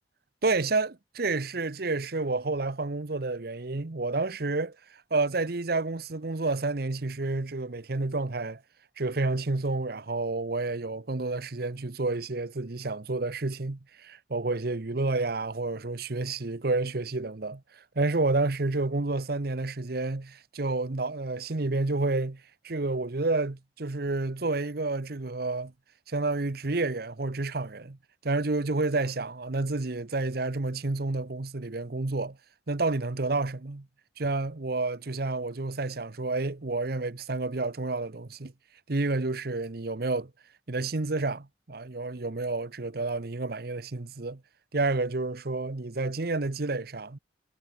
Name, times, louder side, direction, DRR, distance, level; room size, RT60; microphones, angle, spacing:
voice 1, 0.4-0.9 1.1-8.6 9.0-25.7 26.1-28.0 28.2-32.4 32.7-33.9 34.2-38.5 38.9-40.3 40.7-44.4 44.7-47.2, right 3 dB, 60° right, 0.9 m, -30 dB
head